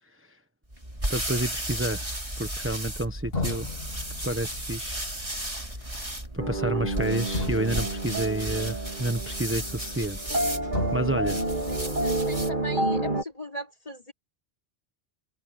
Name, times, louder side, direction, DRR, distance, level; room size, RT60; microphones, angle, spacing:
sound 1, 0.7-12.6, right 1 dB, 30° right, 5.1 m, -34 dB
voice 1, 1.1-2.1 2.4-3.7 4.2-5.0 5.8-10.4 10.9-11.4, right 1 dB, 10° right, 1.1 m, -30 dB
sound 2, 3.3-10.5 10.7-12.8, left 2 dB, 55° left, 4.2 m, -37 dB
sound 3, 6.4-13.2, right 2 dB, 45° right, 3.3 m, -29 dB
voice 2, 11.7-14.1, left 1 dB, 35° left, 3.6 m, -39 dB
omnidirectional pair, 1.1 m